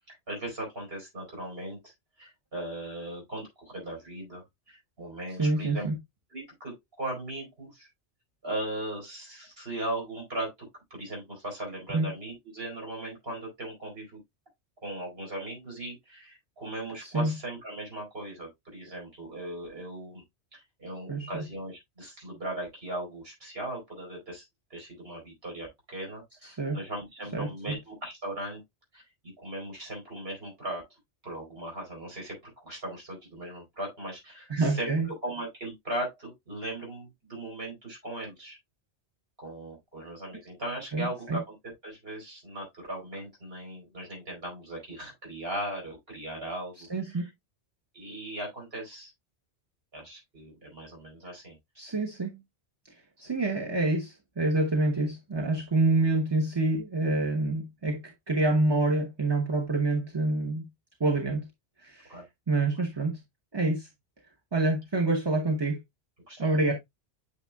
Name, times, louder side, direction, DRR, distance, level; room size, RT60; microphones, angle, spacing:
voice 1, 0.1-5.9 6.3-7.9 8.4-14.2 14.8-20.2 20.5-28.6 28.9-29.0 29.4-30.8 31.2-34.9 35.2-38.6 39.4-41.5 41.8-47.3 47.9-49.1 49.9-51.6 62.1-62.2 66.3-66.7, right 1 dB, 60° right, 4.7 m, -38 dB
voice 2, 5.4-5.9 11.9-12.1 17.0-17.3 21.1-21.3 26.4-26.8 27.3-27.5 34.5-35.1 40.9-41.4 46.9-47.3 51.8-52.4 53.2-60.6 61.0-61.5 61.8-62.2 62.5-63.2 63.5-63.9 64.5-65.8 66.4-66.7, right 2 dB, 25° right, 1.0 m, -27 dB
8.8 x 6.0 x 2.3 m
omnidirectional pair, 1.1 m